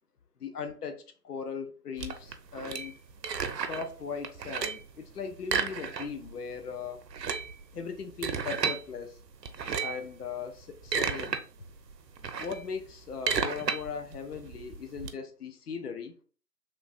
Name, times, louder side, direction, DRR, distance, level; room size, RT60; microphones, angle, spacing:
voice 1, 0.4-2.9 3.5-7.0 7.7-9.2 9.8-11.4 12.4-16.1, left 6 dB, 65° left, 0.6 m, -38 dB
sound 1, 2.0-3.9 4.2-4.9 5.4-6.3 6.6-6.7 7.0-8.8 9.4-10.1 10.6-11.4 11.8-15.1, right 6 dB, 80° right, 0.5 m, -32 dB
3.1 x 2.0 x 2.4 m
figure-of-eight pair, 170°, 50 cm